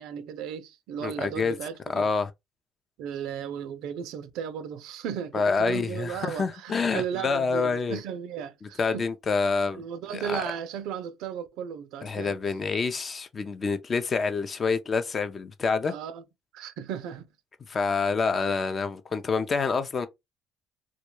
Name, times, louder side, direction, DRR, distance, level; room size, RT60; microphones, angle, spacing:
voice 1, 0.0-2.1 3.0-9.1 9.7-12.4 15.8-16.2 16.5-17.3, right 8 dB, 80° right, 0.4 m, -35 dB
voice 2, 1.0-1.6 1.9-2.3 5.3-8.0 8.6-9.8 10.1-10.4 12.0-15.9 17.7-20.1, left 4 dB, 40° left, 0.5 m, -27 dB
2.2 x 2.2 x 2.9 m
supercardioid pair, 75°, 0 cm